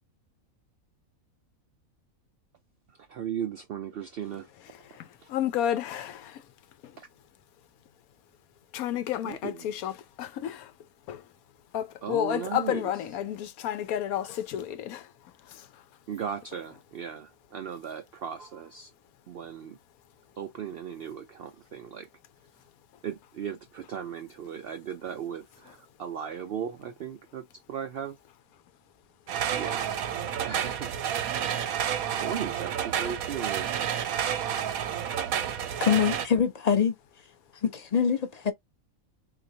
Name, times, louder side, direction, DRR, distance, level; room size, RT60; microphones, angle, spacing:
voice 1, 3.1-4.5 7.0-7.1 9.2-9.7 12.0-12.9 13.9-14.0 16.1-18.9 19.3-19.8 20.4-22.1 23.0-28.2 29.5-29.9 30.4-30.9 32.2-33.7, right 8 dB, 70° right, 0.5 m, -37 dB
voice 2, 4.8-6.4 6.8-6.9 8.7-10.7 11.1-11.2 11.7-15.1 15.5-15.7, left 11 dB, 90° left, 1.1 m, -31 dB
sound 1, 29.3-36.3, right 9 dB, 90° right, 1.1 m, -30 dB
voice 3, 35.8-36.9 37.6-38.5, left 7 dB, 40° left, 0.6 m, -24 dB
3.9 x 2.8 x 2.7 m
omnidirectional pair, 1.5 m